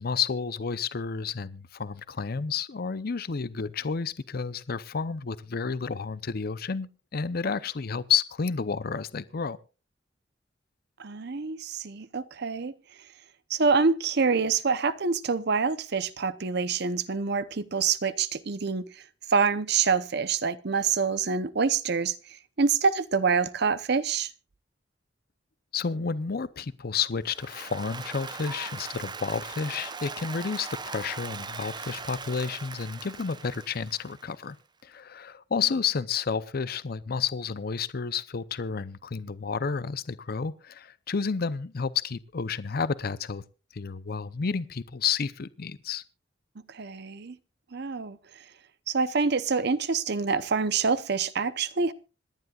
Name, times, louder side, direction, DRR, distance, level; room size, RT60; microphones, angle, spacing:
voice 1, 0.0-9.6 25.7-34.6 34.8-43.4 43.7-46.0, left 5 dB, 55° left, 0.6 m, -31 dB
voice 2, 11.0-12.7 13.5-18.8 19.3-22.1 22.6-24.3 46.7-47.4 47.7-48.2 48.9-51.9, right 5 dB, 60° right, 0.8 m, -26 dB
Applause, 27.3-34.5, right 4 dB, 25° right, 0.8 m, -40 dB
26.5 x 10.5 x 2.4 m
head